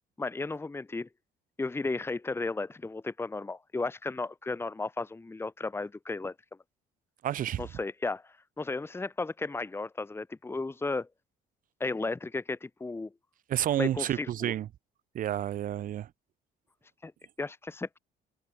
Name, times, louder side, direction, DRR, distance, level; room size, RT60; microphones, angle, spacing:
voice 1, 0.2-1.1 1.6-6.3 7.6-11.1 11.8-13.1 13.7-14.5 17.0-17.1 17.4-18.0, left 3 dB, 15° left, 1.5 m, -34 dB
voice 2, 7.2-7.7 13.5-14.7 15.1-16.1, right 11 dB, 55° right, 0.8 m, -30 dB
cardioid pair, 110°, 17 cm